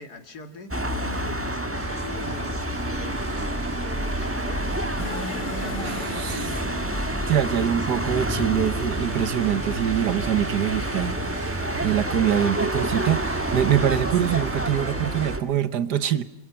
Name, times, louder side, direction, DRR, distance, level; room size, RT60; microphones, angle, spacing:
voice 1, 0.0-6.8 7.3-7.9, left 4 dB, 65° left, 8 dB, 2.5 m, -42 dB
sound 1, 0.7-15.4, right 1 dB, 10° right, 1.3 m, -28 dB
sound 2, 1.7-15.3, right 4 dB, 85° right, 2.8 m, -41 dB
sound 3, 5.0-11.9, left 2 dB, 80° left, 2.6 m, -39 dB
voice 2, 5.8-6.4 7.3-16.2, right 10 dB, 70° right, 14 dB, 1.6 m, -24 dB
28.0 x 24.5 x 5.8 m, 0.85 s
omnidirectional pair, 1.9 m